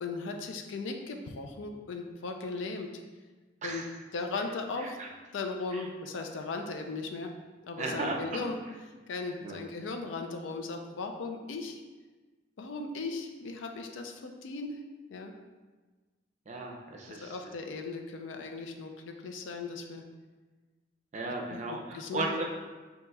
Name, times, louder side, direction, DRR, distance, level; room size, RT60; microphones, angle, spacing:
voice 1, 0.0-2.9 3.6-3.8 4.1-5.0 5.3-7.3 7.6-8.6 9.1-11.8 12.6-14.8 15.1-15.3 17.1-20.0 21.5-22.4, left 3 dB, 80° left, 4 dB, 0.4 m, -37 dB
voice 2, 7.8-8.2 9.4-9.6 16.5-17.3 21.1-22.4, right 2 dB, 40° right, 1 dB, 0.5 m, -35 dB
5.3 x 2.8 x 2.3 m, 1.3 s
head